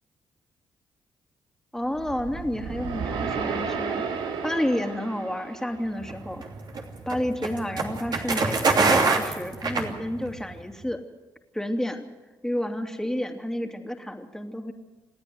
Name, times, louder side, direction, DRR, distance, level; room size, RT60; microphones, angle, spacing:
voice 1, 1.7-4.1 4.4-6.5 7.1-11.0 11.5-12.1 12.4-14.7, left 1 dB, 5° left, 4 dB, 2.8 m, -30 dB
sound 1, 1.9-6.3, right 5 dB, 80° right, 2.1 m, -33 dB
sound 2, 6.0-10.5, right 4 dB, 55° right, 3.0 m, -24 dB
28.0 x 9.7 x 9.6 m, 1.2 s
cardioid pair, 65°, 8 cm